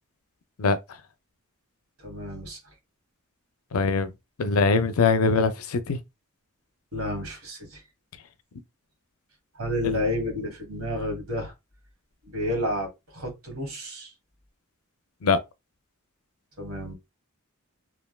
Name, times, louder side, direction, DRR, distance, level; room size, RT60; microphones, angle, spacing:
voice 1, 2.0-2.6 6.9-7.8 9.6-11.5 12.3-14.1 16.6-16.9, left 1 dB, 85° right, 1.6 m, -30 dB
voice 2, 3.7-4.1 4.4-6.0 9.8-10.0 15.2-15.4, left 4 dB, 90° left, 0.5 m, -22 dB
3.3 x 2.6 x 2.3 m
head